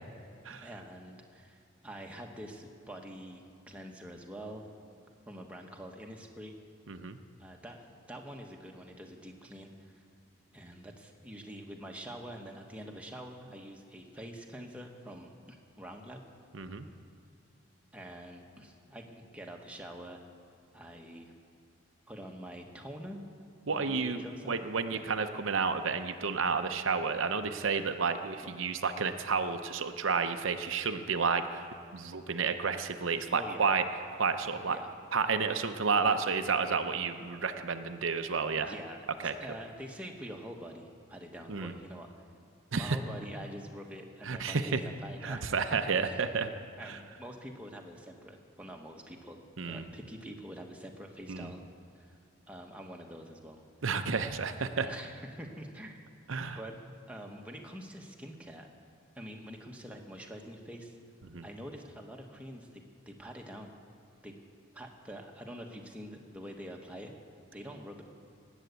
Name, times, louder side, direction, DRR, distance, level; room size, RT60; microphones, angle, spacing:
voice 1, 0.5-4.6 5.3-6.5 7.4-10.0 10.5-16.2 17.9-20.2 20.7-21.3 22.1-23.2 23.7-24.6 24.9-25.0 28.4-28.6 33.3-33.7 34.5-34.9 36.0-36.3 38.6-42.1 42.7-45.5 46.0-46.3 46.8-51.6 51.9-52.2 52.5-53.6 54.2-54.3 54.8-56.8 57.1-58.7 59.2-61.0 61.4-62.8 63.1-63.7 64.2-64.3 64.7-67.1 67.5-68.0, equal, 5° right, 1 dB, 1.2 m, -46 dB
voice 2, 6.9-7.2 16.5-16.9 23.7-31.6 31.9-33.8 34.1-34.8 35.1-38.7 39.2-39.3 41.5-41.7 42.7-43.0 44.2-44.8 45.2-46.5 46.8-47.0 49.6-49.9 51.3-51.5 53.8-54.9 56.3-56.6 61.3-61.5, right 5 dB, 75° right, 8 dB, 0.7 m, -31 dB
19.0 x 8.2 x 8.1 m, 2.4 s
head